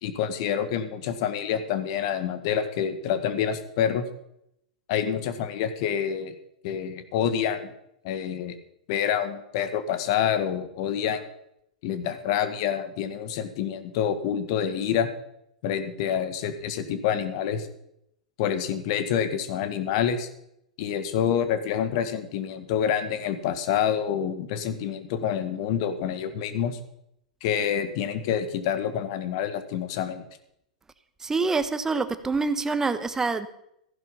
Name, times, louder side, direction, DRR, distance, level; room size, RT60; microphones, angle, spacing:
voice 1, 0.0-4.1 4.9-6.4 6.6-7.7 8.0-8.6 8.9-11.2 11.8-15.1 15.6-17.7 18.4-20.3 20.8-26.8 27.4-30.3, left 8 dB, 55° left, 10 dB, 1.8 m, -27 dB
voice 2, 31.2-33.5, right 4 dB, 15° right, 12 dB, 1.2 m, -26 dB
15.0 x 11.0 x 5.6 m, 0.77 s
hypercardioid pair, 100°, 4 cm